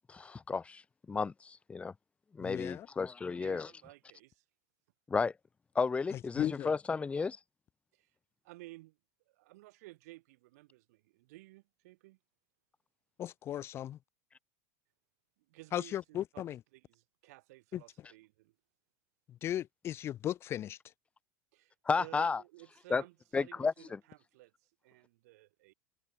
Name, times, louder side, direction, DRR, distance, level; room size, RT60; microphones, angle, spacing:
voice 1, 0.1-0.8 1.1-1.9 2.3-3.7 5.1-5.3 5.7-7.4 21.9-22.4 22.9-23.0 23.3-23.7, left 4 dB, 15° left, 1.0 m, -32 dB
voice 2, 2.4-2.9 6.1-6.7 13.2-14.0 15.7-16.6 17.7-17.8 19.3-20.8, left 11 dB, 30° left, 0.5 m, -36 dB
voice 3, 3.2-4.4 7.9-8.1 8.4-9.0 9.3-12.2 15.5-18.6 21.5-25.7, right 20 dB, 75° right, 6.2 m, -55 dB
supercardioid pair, 135°, 9 cm